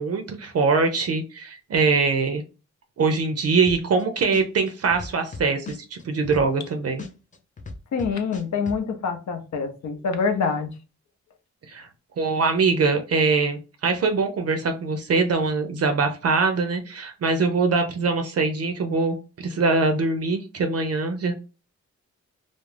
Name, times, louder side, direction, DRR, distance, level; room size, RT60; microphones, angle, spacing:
voice 1, 0.0-2.4 3.0-7.0 11.7-11.9 12.2-21.3, right 4 dB, 55° right, 6 dB, 0.5 m, -23 dB
sound 1, 3.7-4.0 4.3-6.7 7.0-8.8, left 3 dB, 25° left, 0.4 m, -36 dB
voice 2, 7.9-10.7, left 5 dB, 75° left, 5 dB, 0.6 m, -26 dB
2.4 x 2.0 x 3.1 m, 0.32 s
cardioid pair, 95°, 29 cm